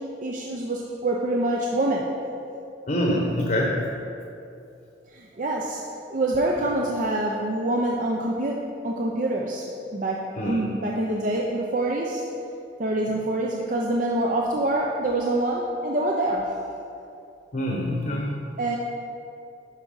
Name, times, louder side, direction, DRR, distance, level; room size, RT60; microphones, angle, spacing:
voice 1, 0.0-2.2 5.1-5.8 6.1-9.6 9.9-12.2 12.8-16.5 18.6-18.8, right 1 dB, 45° right, -1 dB, 0.6 m, -26 dB
voice 2, 2.9-3.8 10.4-10.6 17.5-18.4, equal, 45° left, -1 dB, 1.0 m, -25 dB
11.0 x 4.7 x 5.5 m, 2.6 s
head